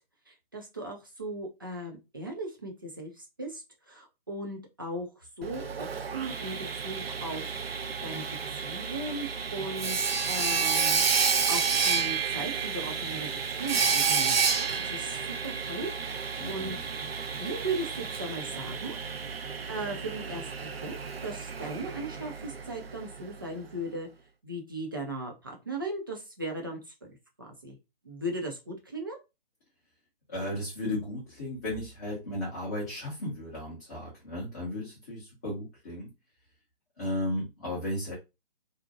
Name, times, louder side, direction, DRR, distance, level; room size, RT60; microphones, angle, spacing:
voice 1, 0.3-6.6 6.8-7.6 8.0-8.2 8.6-19.0 19.7-24.1 24.4-27.1 27.4-27.8 28.0-29.2, right 2 dB, 25° right, 0 dB, 0.4 m, -38 dB
Sawing, 5.4-23.2, right 6 dB, 75° right, 0.5 m, -30 dB
voice 2, 16.4-16.8 30.3-36.1 37.0-38.1, left 1 dB, 15° left, -7 dB, 0.6 m, -35 dB
2.5 x 2.1 x 2.6 m, 0.26 s
figure-of-eight pair, 140°, 30 cm